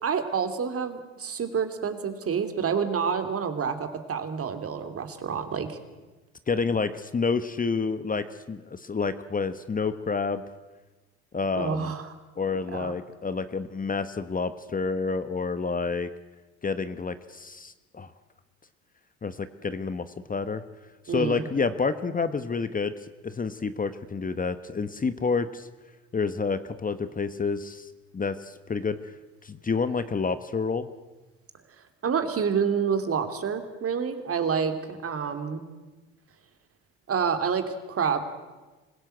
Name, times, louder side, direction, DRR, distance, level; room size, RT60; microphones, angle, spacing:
voice 1, 0.0-5.8 11.5-12.1 12.7-13.0 21.1-21.4 32.0-35.6 37.1-38.2, right 6 dB, 45° right, 8 dB, 2.9 m, -28 dB
voice 2, 6.5-10.4 11.3-11.9 12.4-16.1 16.6-18.1 19.2-20.6 21.1-22.9 23.2-25.7 26.1-27.9 28.1-29.0 29.4-30.9, left 4 dB, 25° left, 12 dB, 1.2 m, -29 dB
26.0 x 16.5 x 8.0 m, 1.2 s
hypercardioid pair, 65°, 33 cm